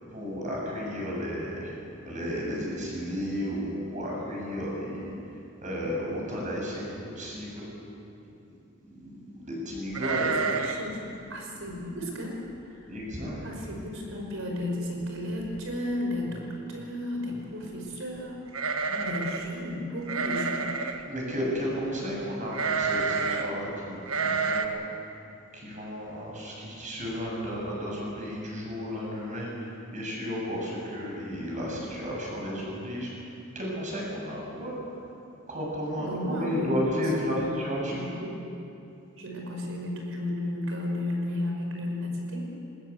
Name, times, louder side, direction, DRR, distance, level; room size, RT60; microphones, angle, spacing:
voice 1, 0.1-7.7 8.8-10.8 12.9-13.4 16.2-16.4 17.2-17.4 18.9-19.1 21.1-24.9 25.5-33.1 33.5-35.0 35.5-38.1, equal, 35° right, -3 dB, 7.5 m, -33 dB
sound 1, 9.9-10.9 11.2-11.3 11.7-12.0 12.6-12.7 13.0-13.5 13.8-13.9 15.0-15.1 15.4-15.8 18.5-19.5 20.1-21.0 22.5-23.5 24.1-24.7, right 4 dB, 90° right, 1.4 m, -29 dB
voice 2, 10.2-12.9 13.4-18.4 18.7-20.7 36.0-37.5 37.9-38.6 39.1-42.5, left 1 dB, 70° right, 1 dB, 5.5 m, -34 dB
21.5 x 19.0 x 8.3 m, 2.6 s
head